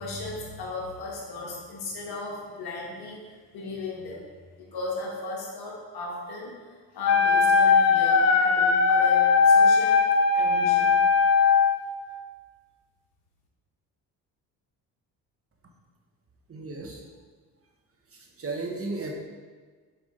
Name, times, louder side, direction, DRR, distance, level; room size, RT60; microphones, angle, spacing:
voice 1, 0.0-4.2 4.6-10.0 10.3-11.0, left 2 dB, 65° left, -2 dB, 1.6 m, -36 dB
Wind instrument woodwind instrument, 7.0-11.8, left 5 dB, 40° left, 0.6 m, -19 dB
voice 2, 16.5-17.0 18.4-19.1, right 3 dB, 35° right, 0 dB, 1.1 m, -34 dB
5.5 x 4.7 x 3.8 m, 1.5 s
supercardioid pair, 75°, 40 cm